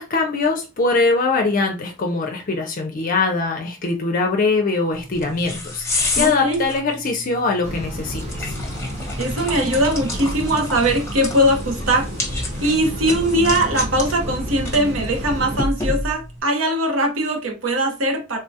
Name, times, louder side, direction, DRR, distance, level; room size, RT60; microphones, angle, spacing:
voice 1, 0.0-8.5, left 3 dB, 45° left, 0.5 m, -22 dB
sound 1, 4.9-16.4, left 2 dB, 15° left, 0.9 m, -30 dB
voice 2, 6.2-6.6 9.2-12.1 12.3-18.4, right 1 dB, 75° right, 0.9 m, -21 dB
sound 2, 7.6-15.6, equal, 35° right, 0.8 m, -30 dB
3.5 x 2.3 x 2.7 m
head